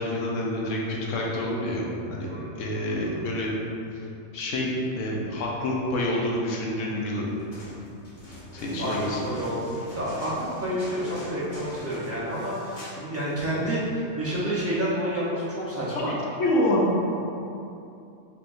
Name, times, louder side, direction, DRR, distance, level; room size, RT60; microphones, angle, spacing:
voice 1, 0.0-1.8 2.1-2.3 2.5-3.8 4.3-7.3 8.5-9.2 16.0-16.1 16.4-16.9, left 1 dB, 80° left, -3 dB, 1.0 m, -27 dB
voice 2, 2.3-3.2 8.8-16.2, equal, 15° right, -9 dB, 0.6 m, -29 dB
sound 1, 7.4-13.0 13.3-13.4, equal, 40° left, 1.1 m, -43 dB
4.3 x 3.5 x 2.5 m, 2.7 s
omnidirectional pair, 1.3 m